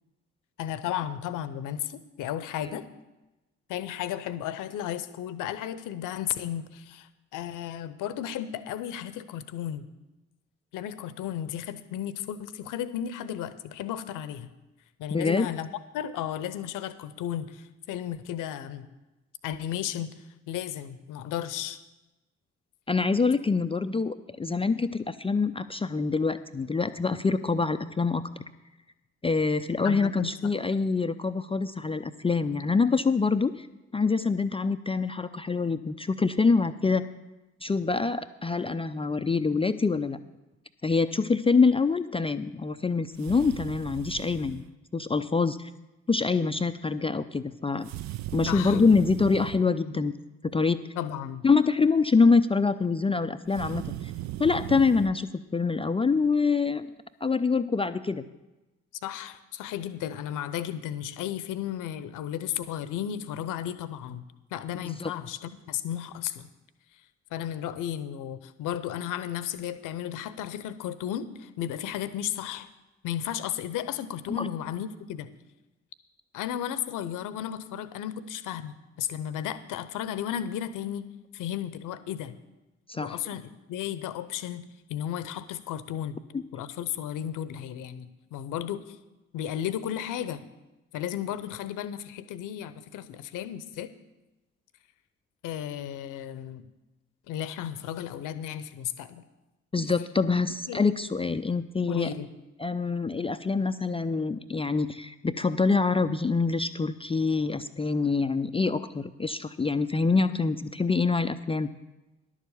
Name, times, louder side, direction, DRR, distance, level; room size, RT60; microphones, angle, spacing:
voice 1, 0.6-2.9 3.7-9.9 10.7-14.5 15.0-15.7 15.9-18.9 19.4-20.1 20.5-21.8 29.8-30.3 48.5-48.8 51.0-51.4 59.0-64.2 64.5-66.5 67.3-72.7 73.0-75.3 76.3-81.1 81.3-82.3 83.0-84.6 84.9-86.2 86.5-89.0 89.3-90.4 90.9-93.9 95.4-96.6 97.3-99.2 100.7-100.8 101.9-102.3, left 10 dB, 55° left, 14 dB, 0.9 m, -34 dB
voice 2, 15.1-15.5 22.9-28.2 29.2-33.7 33.9-37.1 37.6-40.2 40.8-44.6 44.9-45.7 46.1-47.9 48.3-50.1 50.4-50.8 51.4-53.8 54.4-56.9 57.2-58.3 65.0-65.1 74.4-74.5 82.9-83.2 86.3-86.4 99.7-102.1 102.6-111.7, left 4 dB, 15° left, 10 dB, 0.5 m, -25 dB
sound 1, 43.2-44.7 47.8-49.6 53.5-55.1, right 15 dB, 50° right, 0.5 m, -37 dB
11.5 x 7.3 x 6.9 m, 1.0 s
figure-of-eight pair, 45°, 37 cm